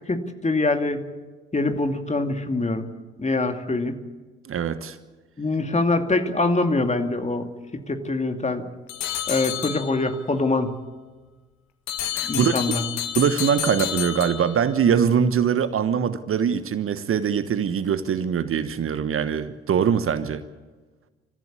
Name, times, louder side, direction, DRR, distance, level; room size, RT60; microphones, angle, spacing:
voice 1, 0.1-1.0 1.5-2.9 3.2-4.0 5.4-7.5 7.9-8.7 9.3-10.7 12.2-12.8, left 2 dB, 20° left, 6 dB, 2.5 m, -24 dB
voice 2, 4.4-5.0 12.1-12.6 13.1-20.4, right 7 dB, 45° right, 13 dB, 1.2 m, -22 dB
sound 1, 8.9-10.2 11.9-14.9, left 11 dB, 65° left, 1.7 m, -30 dB
28.0 x 15.0 x 8.4 m, 1.3 s
figure-of-eight pair, 45°, 31 cm